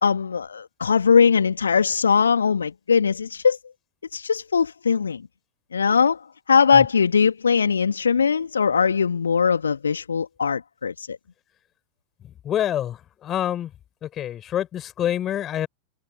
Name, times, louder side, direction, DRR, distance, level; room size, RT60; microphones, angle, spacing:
voice 1, 0.0-3.6 4.1-5.2 5.7-6.2 6.5-11.1, left 6 dB, 70° left, 2.1 m, -20 dB
voice 2, 12.2-13.7 14.0-15.7, left 11 dB, 30° left, 7.2 m, -27 dB
figure-of-eight pair, 90°, 0 cm